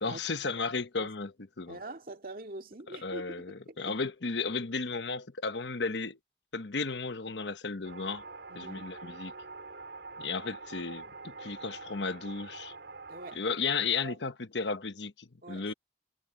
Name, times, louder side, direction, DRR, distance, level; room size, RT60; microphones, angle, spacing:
voice 1, 0.0-1.3 1.6-1.8 2.9-6.2 6.5-8.2 8.5-9.3 10.2-12.7 13.3-15.7, left 4 dB, 85° left, 1.1 m, -34 dB
voice 2, 1.7-3.9 8.5-8.9 13.1-13.5 14.0-14.2 15.4-15.7, right 2 dB, 55° right, 2.2 m, -44 dB
sound 1, 7.8-13.4, right 3 dB, 85° right, 5.1 m, -45 dB
head